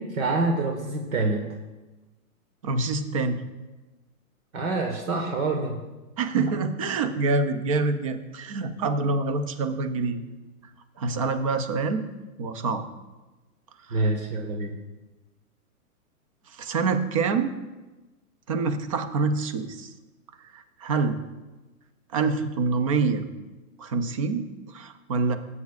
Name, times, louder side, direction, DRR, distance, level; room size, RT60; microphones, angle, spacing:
voice 1, 0.0-1.5 4.5-5.8 13.9-14.7, right 2 dB, 70° right, 3 dB, 1.4 m, -26 dB
voice 2, 2.6-3.4 6.2-10.2 11.0-12.0 12.4-12.8 13.9-14.0 16.6-17.6 18.5-19.9 20.5-21.2 22.1-23.3 23.8-25.4, right 4 dB, 25° right, 10 dB, 0.4 m, -26 dB
15.0 x 8.2 x 2.4 m, 1.1 s
hypercardioid pair, 145°, 44 cm